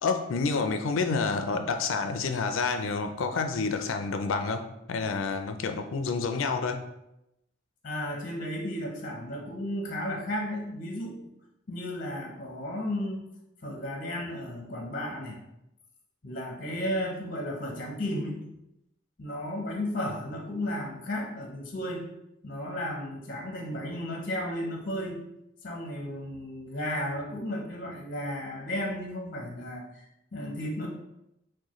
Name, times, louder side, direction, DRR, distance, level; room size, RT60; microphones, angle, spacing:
voice 1, 0.0-4.6 4.9-6.8, left 4 dB, 80° left, 7 dB, 0.4 m, -28 dB
voice 2, 7.8-11.3 11.7-13.3 13.6-15.4 16.2-18.4 19.2-22.1 22.4-25.2 25.6-30.1 30.3-30.9, left 1 dB, 40° left, 0 dB, 0.7 m, -34 dB
6.2 x 2.2 x 3.1 m, 0.85 s
head